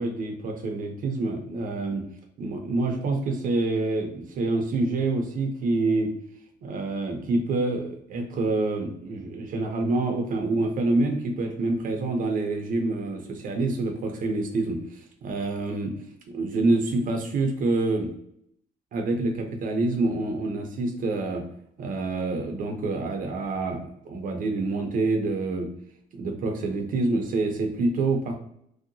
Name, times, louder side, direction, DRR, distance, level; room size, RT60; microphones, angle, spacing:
voice 1, 0.0-2.0 2.4-6.1 6.6-15.9 16.3-18.1 18.9-21.4 21.8-25.7 26.1-28.3, right 2 dB, 55° right, 3 dB, 0.7 m, -27 dB
3.2 x 2.8 x 2.6 m, 0.72 s
cardioid pair, 110°, 17 cm